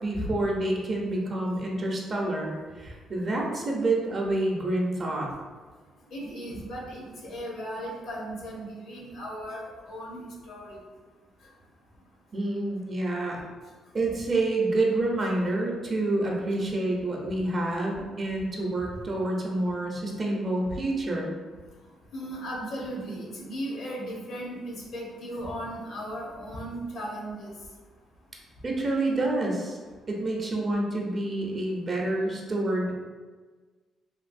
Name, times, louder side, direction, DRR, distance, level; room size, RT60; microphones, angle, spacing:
voice 1, 0.0-5.3 12.3-13.4 13.9-21.3 28.6-29.8 30.1-32.9, right 2 dB, 40° right, -1 dB, 0.6 m, -28 dB
voice 2, 6.1-10.8 22.1-27.6, equal, 75° left, -3 dB, 0.9 m, -36 dB
3.0 x 2.6 x 2.5 m, 1.4 s
cardioid pair, 90°, 0 cm